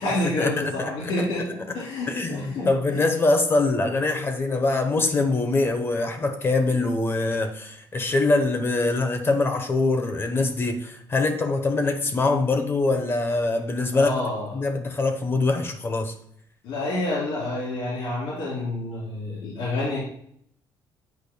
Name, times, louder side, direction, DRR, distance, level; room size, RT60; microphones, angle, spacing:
voice 1, 0.0-3.0 3.9-4.2 13.9-14.5 16.6-20.0, left 2 dB, 80° left, -6 dB, 2.4 m, -29 dB
voice 2, 0.8-1.2 2.1-14.1 14.5-16.1, left 3 dB, 30° left, 5 dB, 0.9 m, -23 dB
8.4 x 5.1 x 2.2 m, 0.68 s
cardioid pair, 120°, 8 cm